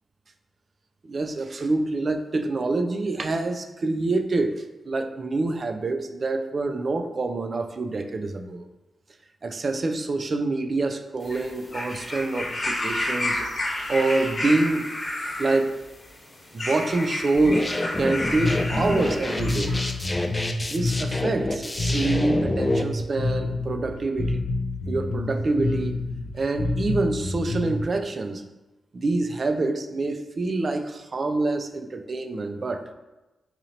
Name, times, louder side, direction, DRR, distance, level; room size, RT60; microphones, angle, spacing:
voice 1, 1.0-8.6 9.4-13.5 13.9-14.9 15.4-15.8 16.5-17.7 18.0-19.8 20.7-24.4 24.9-26.0 26.3-28.4 28.9-32.8, right 3 dB, 50° right, 6 dB, 0.4 m, -26 dB
sound 1, 11.2-19.9 20.8-20.9, left 1 dB, 40° left, 1.1 m, -31 dB
sound 2, 17.3-22.8, left 1 dB, 20° left, 0.4 m, -28 dB
Bass guitar, 18.4-27.8, left 3 dB, 85° left, 0.4 m, -28 dB
4.0 x 2.9 x 2.7 m, 1.0 s
cardioid pair, 55°, 0 cm